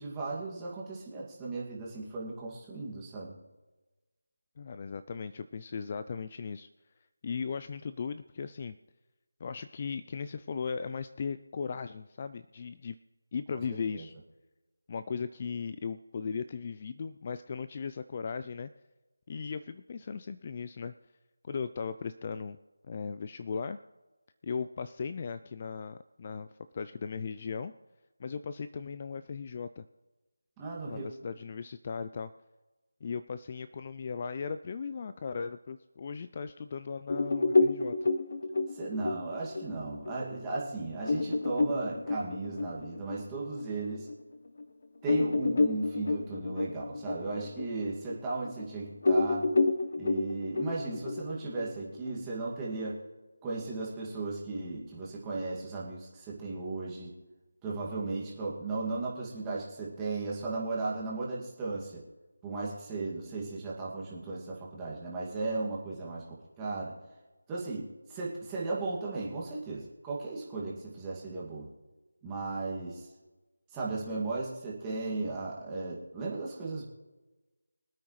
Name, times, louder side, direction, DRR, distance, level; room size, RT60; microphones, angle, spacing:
voice 1, 0.0-3.4 13.7-14.1 30.6-31.1 38.7-44.1 45.0-49.5 50.0-53.0 53.4-57.2 57.6-62.0 62.4-67.0 67.5-71.7 72.2-73.1 73.7-76.8, right 3 dB, 10° right, -4 dB, 2.1 m, -36 dB
voice 2, 4.6-6.7 7.2-8.7 9.4-13.0 13.3-14.1 14.9-18.7 19.3-20.9 21.4-22.6 22.8-23.8 24.4-26.5 26.7-27.7 28.2-29.8 30.9-32.3 33.0-38.1, left 5 dB, 30° left, 12 dB, 0.3 m, -37 dB
sound 1, 37.1-44.1 44.6-44.7 45.0-48.7 49.0-52.1, left 3 dB, 50° left, 0.9 m, -30 dB
24.0 x 8.9 x 3.2 m, 1.2 s
figure-of-eight pair, 170°, 0 cm